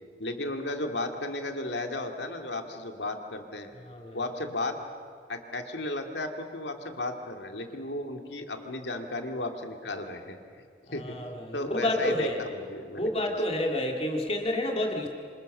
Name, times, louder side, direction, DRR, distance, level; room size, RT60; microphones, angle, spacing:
voice 1, 0.2-3.7 4.1-4.8 5.3-10.4 10.9-11.1 11.5-13.1 13.5-13.6, left 2 dB, 70° left, 5 dB, 2.4 m, -34 dB
voice 2, 3.8-4.2 10.9-12.4 12.9-15.1, left 1 dB, 30° left, 2 dB, 2.4 m, -29 dB
26.5 x 26.5 x 6.7 m, 2.1 s
head